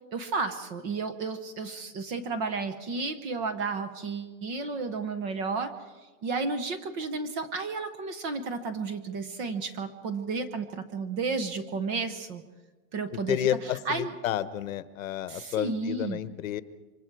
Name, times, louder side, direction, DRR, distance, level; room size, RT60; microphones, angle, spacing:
voice 1, 0.1-5.7 6.2-12.4 12.9-13.4 13.6-14.1 15.3-16.2, right 4 dB, 20° right, 11 dB, 0.8 m, -32 dB
voice 2, 13.1-16.6, left 11 dB, 60° left, 14 dB, 1.1 m, -31 dB
28.0 x 25.0 x 4.7 m, 1.3 s
supercardioid pair, 170°, 46 cm